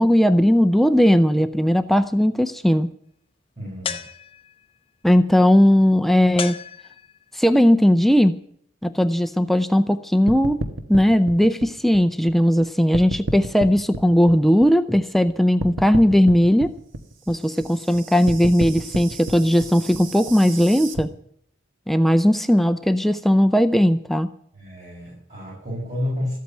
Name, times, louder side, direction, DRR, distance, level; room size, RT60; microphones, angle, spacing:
voice 1, 0.0-2.9 5.0-6.6 7.3-8.4 8.8-10.6 10.9-16.7 17.3-21.1 21.9-24.3, equal, ahead, 10 dB, 0.5 m, -18 dB
voice 2, 3.6-4.0 24.5-26.3, left 1 dB, 35° right, -6 dB, 6.5 m, -30 dB
sound 1, 3.8-4.7 6.4-7.4, left 6 dB, 30° left, 0.8 m, -33 dB
sound 2, 10.3-12.6 12.9-15.3 15.6-21.0, right 1 dB, 85° right, 1.4 m, -31 dB
14.0 x 8.4 x 8.9 m, 0.66 s
head